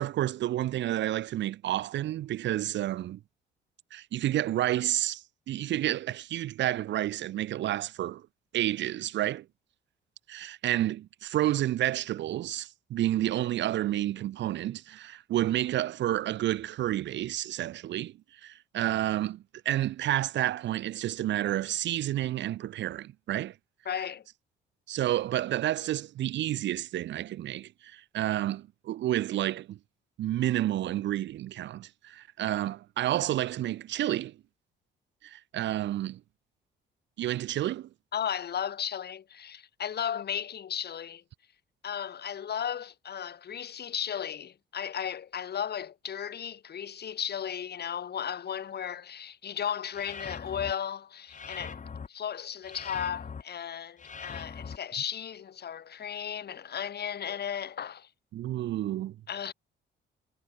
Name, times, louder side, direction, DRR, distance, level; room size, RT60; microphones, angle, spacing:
voice 1, 0.0-3.2 3.9-8.2 8.5-9.5 10.3-23.5 24.9-29.8 30.2-34.4 35.2-36.2 37.2-37.9 58.3-59.2, right 13 dB, 65° right, 0.5 m, -30 dB
voice 2, 23.9-24.2 38.1-41.2 41.8-51.8 52.1-58.1 59.3-59.5, left 8 dB, 55° left, 2.7 m, -35 dB
sound 1, 49.9-50.7 51.3-52.1 52.6-53.4 54.0-54.8, left 5 dB, 40° left, 5.0 m, -41 dB
cardioid pair, 90°, 20 cm